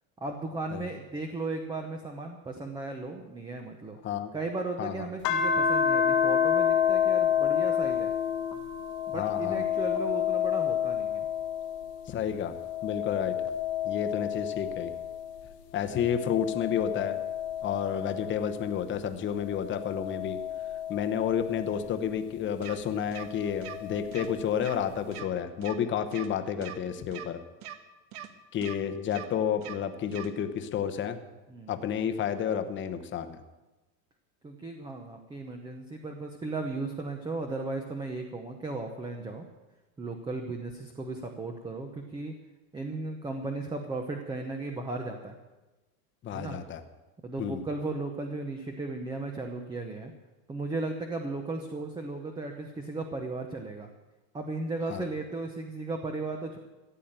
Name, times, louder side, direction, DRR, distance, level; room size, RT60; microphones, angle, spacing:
voice 1, 0.2-4.0 4.3-8.1 9.1-11.3 31.5-31.7 34.4-39.5 40.0-42.3 42.7-45.3 46.3-46.6 47.2-50.1 50.5-53.9 54.3-56.6, right 3 dB, 10° right, 4 dB, 0.8 m, -36 dB
sound 1, 5.2-12.0 12.4-15.3 15.9-18.7 19.4-21.9 23.2-24.3, left 8 dB, 80° left, 1.6 m, -29 dB
voice 2, 9.1-9.6 12.1-12.5 12.8-13.4 13.8-14.9 15.7-17.2 17.6-20.4 20.9-27.4 28.5-31.2 31.7-33.4 46.2-46.8 47.4-47.6 54.9-55.1, left 8 dB, 25° left, 8 dB, 1.0 m, -30 dB
sound 2, 22.6-22.7 23.1-23.2 23.6-23.7 24.1-24.3 24.6-24.7 25.1-25.2 25.6-25.7 26.1-26.3 26.6-26.7 27.1-27.2 27.6-27.7 28.1-28.3 28.6-28.7 29.1-29.2 29.6-29.7 30.1-30.3, right 11 dB, 55° right, 1.6 m, -41 dB
15.0 x 8.4 x 9.0 m, 1.1 s
supercardioid pair, 155°, 47 cm